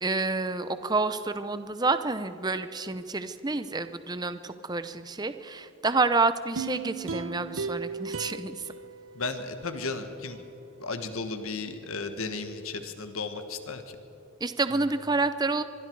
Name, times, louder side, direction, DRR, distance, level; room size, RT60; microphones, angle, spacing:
voice 1, 0.0-8.7 14.4-15.6, right 3 dB, 20° right, 11 dB, 0.6 m, -28 dB
sound 1, 6.6-9.9 10.3-10.4, right 5 dB, 70° right, 0.8 m, -36 dB
voice 2, 9.1-10.4 10.8-14.0, left 3 dB, 70° left, 8 dB, 1.5 m, -34 dB
24.0 x 23.5 x 4.7 m, 2.9 s
head